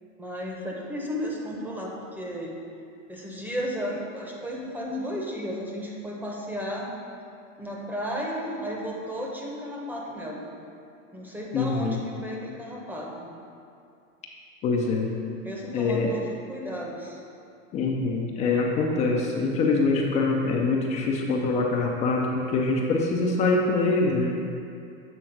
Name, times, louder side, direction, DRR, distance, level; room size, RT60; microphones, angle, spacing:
voice 1, 0.2-2.5 3.1-6.9 7.6-10.5 11.1-13.3 15.4-17.2, equal, 5° right, -2 dB, 0.7 m, -34 dB
voice 2, 11.5-12.0 14.6-15.2 15.7-16.1 17.7-24.3, left 3 dB, 20° left, 0 dB, 0.3 m, -24 dB
7.8 x 3.5 x 5.8 m, 2.5 s
supercardioid pair, 140°, 40 cm